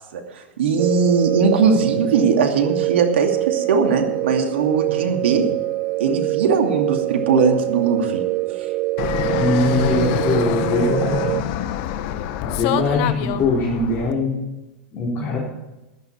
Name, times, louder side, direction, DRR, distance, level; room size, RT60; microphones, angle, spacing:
voice 1, 0.1-5.4 6.0-8.2 8.6-8.7, right 5 dB, 75° right, 5 dB, 2.5 m, -20 dB
sound 1, 0.8-11.4, right 20 dB, 40° right, 0.4 m, -24 dB
Fixed-wing aircraft airplane, 9.0-14.1, left 11 dB, 55° left, 1.1 m, -25 dB
voice 2, 9.2-11.3 12.4-14.3 14.9-15.4, left 2 dB, 35° left, -5 dB, 4.3 m, -22 dB
16.0 x 11.5 x 4.7 m, 1.0 s
hypercardioid pair, 105°, 6 cm